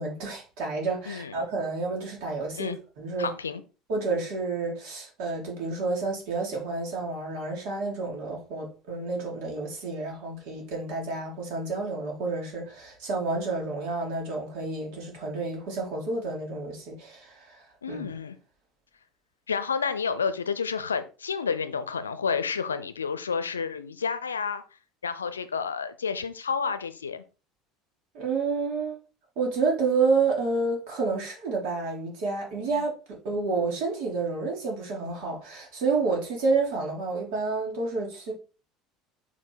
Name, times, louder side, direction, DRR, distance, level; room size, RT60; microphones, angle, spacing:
voice 1, 0.0-3.3 3.9-18.0 28.1-29.0 29.4-38.3, right 3 dB, 60° right, 2.9 m, -29 dB
voice 2, 1.1-1.5 2.6-2.8 3.2-3.6 17.8-18.4 19.5-24.6 25.0-27.2 32.7-32.8, left 6 dB, 80° left, 0.6 m, -30 dB
5.9 x 4.5 x 4.5 m
figure-of-eight pair, 65°, 0 cm